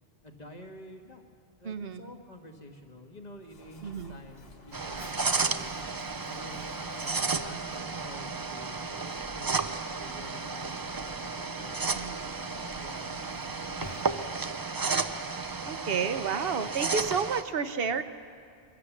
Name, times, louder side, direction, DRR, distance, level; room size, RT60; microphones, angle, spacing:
voice 1, 0.2-1.2 1.6-7.1 7.4-8.8 9.3-11.8 12.4-13.8 15.6-16.2, left 1 dB, 40° left, 3 dB, 1.8 m, -49 dB
voice 2, 1.6-2.1 3.8-4.2 12.0-12.1 15.6-18.0, right 6 dB, 60° right, 11 dB, 1.0 m, -31 dB
Mechanisms, 3.4-14.5, left 1 dB, 65° left, 1.8 m, -50 dB
sound 1, 4.7-17.4, right 4 dB, 30° right, 0.4 m, -33 dB
23.5 x 16.5 x 7.3 m, 2.4 s
omnidirectional pair, 1.1 m